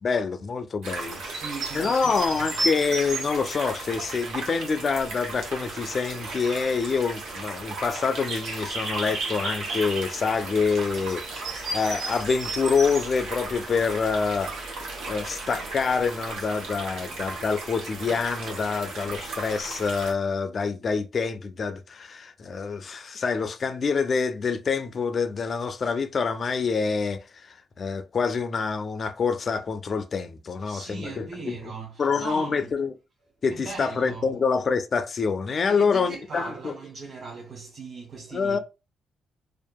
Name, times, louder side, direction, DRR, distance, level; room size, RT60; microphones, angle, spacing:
voice 1, 0.0-1.2 1.7-11.2 11.7-14.5 15.1-31.6 32.0-32.9 33.4-36.7 38.3-38.6, left 5 dB, 45° left, 0.3 m, -26 dB
sound 1, 0.8-20.1, right 3 dB, 75° right, 0.9 m, -34 dB
voice 2, 1.2-2.6 30.6-32.7 33.5-34.4 35.7-38.6, right 4 dB, 45° right, 0.6 m, -39 dB
2.7 x 2.4 x 2.2 m
cardioid pair, 90°, 0 cm